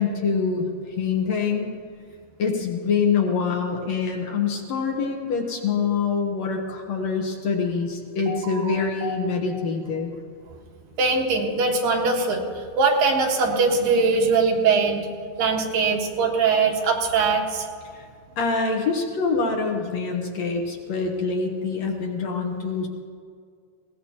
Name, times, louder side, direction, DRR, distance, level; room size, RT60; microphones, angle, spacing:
voice 1, 0.0-1.8 2.4-10.1 17.9-18.1 18.4-22.9, left 5 dB, 65° left, 2 dB, 2.0 m, -25 dB
voice 2, 8.3-8.7 9.0-9.2 11.0-12.4 12.8-15.1 15.4-17.7, right 4 dB, 85° right, 1 dB, 3.2 m, -21 dB
20.5 x 17.5 x 2.9 m, 2.2 s
omnidirectional pair, 3.9 m